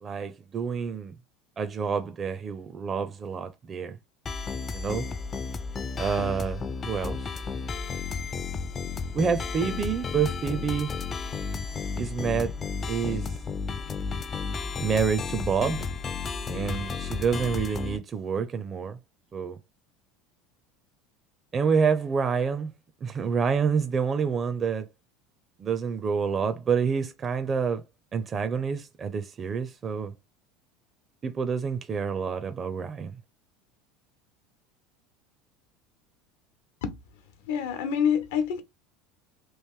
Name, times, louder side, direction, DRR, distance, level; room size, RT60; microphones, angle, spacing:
voice 1, 0.0-1.1 1.6-4.0 4.7-5.1 6.0-7.2 9.1-10.9 12.0-12.5 12.9-13.3 14.8-15.9 16.5-19.0 19.3-19.6 21.5-22.7 23.0-24.9 25.6-27.8 28.1-30.1 31.2-33.2, right 6 dB, 30° right, 0.5 m, -28 dB
sound 1, 4.3-18.0, left 5 dB, 30° left, 0.4 m, -33 dB
voice 2, 37.5-38.6, left 7 dB, 80° left, 0.9 m, -26 dB
3.1 x 2.5 x 3.5 m
supercardioid pair, 100°, 0 cm